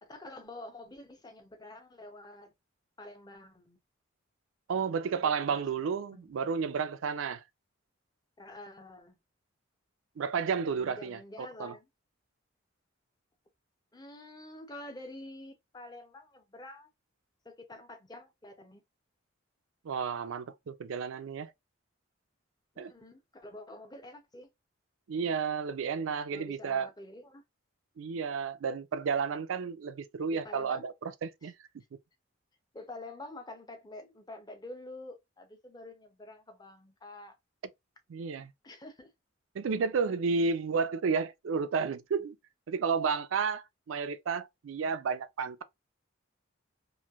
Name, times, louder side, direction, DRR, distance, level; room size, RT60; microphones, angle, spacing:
voice 1, 0.0-2.5 3.0-3.8 5.1-5.6 6.1-6.3 6.6-6.8 8.4-9.2 10.7-11.9 13.9-16.9 17.4-18.8 22.7-24.5 26.3-27.4 30.3-30.9 31.4-31.5 32.7-37.4 38.6-39.1, left 2 dB, 20° left, 0.6 m, -48 dB
voice 2, 4.7-7.4 10.2-11.7 19.8-21.5 22.8-22.9 25.1-26.9 28.0-31.5 38.1-38.5 39.5-42.4 42.7-45.6, right 5 dB, 85° right, 0.4 m, -32 dB
3.1 x 2.5 x 2.3 m
head